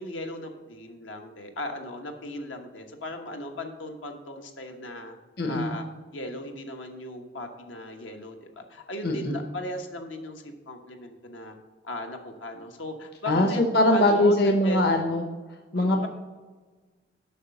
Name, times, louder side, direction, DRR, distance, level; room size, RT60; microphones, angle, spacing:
voice 1, 0.0-5.1 5.5-5.8 6.1-11.5 11.8-14.8 15.7-16.1, left 1 dB, 85° left, 4 dB, 1.3 m, -37 dB
voice 2, 5.4-5.7 9.0-9.4 13.3-15.2 15.7-16.1, left 1 dB, 55° left, 3 dB, 0.9 m, -22 dB
8.2 x 5.7 x 7.0 m, 1.3 s
head